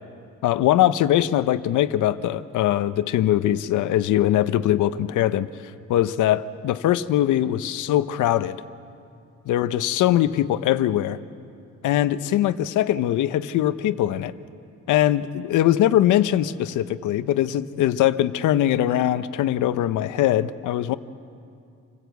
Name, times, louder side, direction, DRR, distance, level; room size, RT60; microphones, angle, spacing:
voice 1, 0.4-5.5 5.9-8.6 9.5-11.2 11.8-14.3 14.9-21.0, left 12 dB, 85° left, 13 dB, 0.8 m, -21 dB
27.0 x 16.0 x 8.1 m, 2.5 s
cardioid pair, 90°, 30 cm